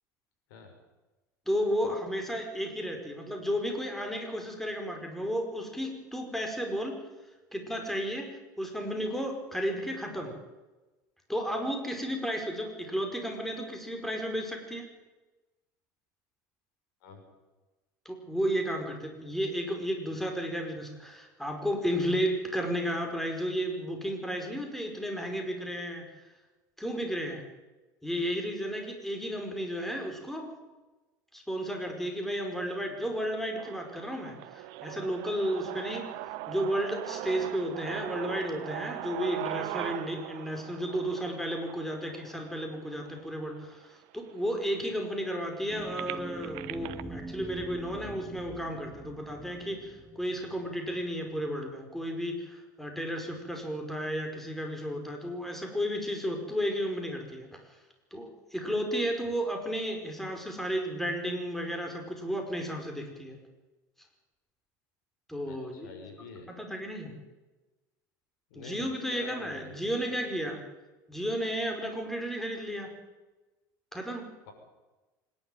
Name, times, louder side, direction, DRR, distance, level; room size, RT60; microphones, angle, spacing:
voice 1, 1.5-7.0 7.5-8.3 8.6-10.3 11.3-14.9 18.1-26.0 26.8-27.4 28.0-30.5 31.3-36.1 36.5-43.9 44.1-57.5 58.1-63.4 65.3-65.9 66.5-67.1 68.6-70.6 71.1-72.9 73.9-74.2, equal, 5° left, 3 dB, 5.2 m, -33 dB
sound 1, 33.6-43.5 44.2-44.3 44.5-47.0, right 16 dB, 65° right, 1.1 m, -40 dB
sound 2, 45.7-51.4, right 2 dB, 15° right, 7.8 m, -44 dB
voice 2, 65.4-66.5 68.5-70.2, left 4 dB, 80° left, 3 dB, 6.4 m, -47 dB
25.5 x 12.0 x 9.3 m, 1.2 s
hypercardioid pair, 90°, 11 cm